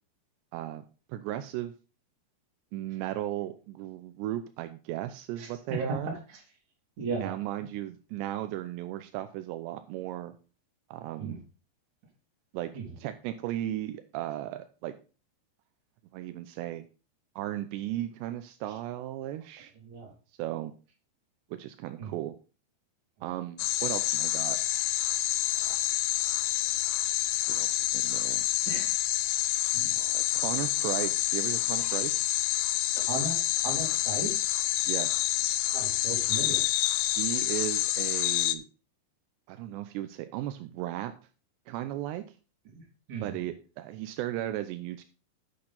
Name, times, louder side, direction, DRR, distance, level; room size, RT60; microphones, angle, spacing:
voice 1, 0.5-0.8 1.1-1.7 2.7-6.1 7.2-10.3 10.9-11.4 12.5-12.7 13.0-15.0 16.1-16.8 17.4-19.7 20.4-20.7 21.6-22.3 23.2-24.6 25.6-25.8 27.5-28.5 30.0-32.2 34.9-35.4 37.2-38.6 39.5-41.1 41.7-42.3 43.2-45.0, right 13 dB, 85° right, 9 dB, 2.9 m, -36 dB
voice 2, 5.4-6.4 7.0-7.4 11.2-11.4 12.7-12.9 19.8-20.1 22.0-22.2 28.7-29.0 29.7-30.0 33.1-34.4 35.7-36.6 42.7-42.8 43.1-43.5, right 3 dB, 45° right, 1 dB, 3.6 m, -36 dB
sound 1, 23.6-38.5, left 15 dB, 80° left, 2.5 m, -28 dB
8.8 x 8.7 x 4.0 m, 0.34 s
omnidirectional pair, 4.9 m